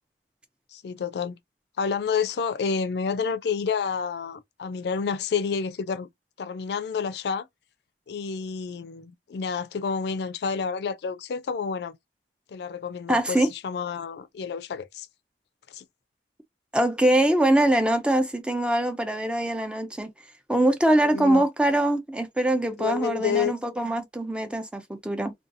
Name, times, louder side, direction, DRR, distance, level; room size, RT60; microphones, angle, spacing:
voice 1, 0.7-1.4 1.8-6.1 6.4-7.5 8.1-11.9 12.5-15.1 15.7-15.8 21.0-21.5 22.8-23.5, left 6 dB, 65° left, 0.3 m, -29 dB
voice 2, 13.1-13.5 16.7-20.1 20.5-25.3, right 1 dB, 5° right, 0.4 m, -23 dB
2.6 x 2.2 x 2.5 m
head